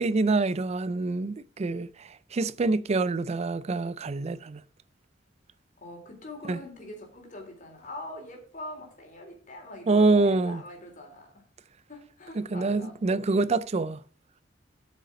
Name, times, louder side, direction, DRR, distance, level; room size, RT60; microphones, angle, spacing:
voice 1, 0.0-4.6 6.5-6.6 9.9-10.6 12.4-14.0, right 3 dB, 35° right, 0.4 m, -26 dB
voice 2, 5.8-11.4 11.9-13.0, left 1 dB, 45° left, 3.6 m, -43 dB
8.2 x 6.7 x 6.2 m
head